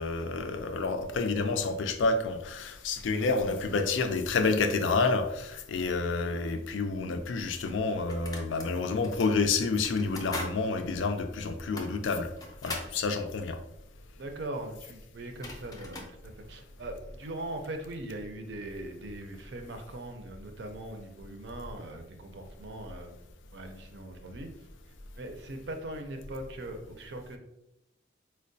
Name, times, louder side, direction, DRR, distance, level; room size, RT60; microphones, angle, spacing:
voice 1, 0.0-12.3 12.6-13.6, left 3 dB, 85° left, 0.4 m, -29 dB
sound 1, 6.9-7.0 7.7-8.7 9.0-9.3 9.8-10.6 10.9-11.0 11.6-12.9 14.9-15.0 15.2-16.1, left 2 dB, 20° left, 0.4 m, -41 dB
voice 2, 14.2-23.1 23.5-24.5 25.2-27.4, right 1 dB, 65° right, 0.5 m, -40 dB
4.4 x 2.1 x 2.6 m
head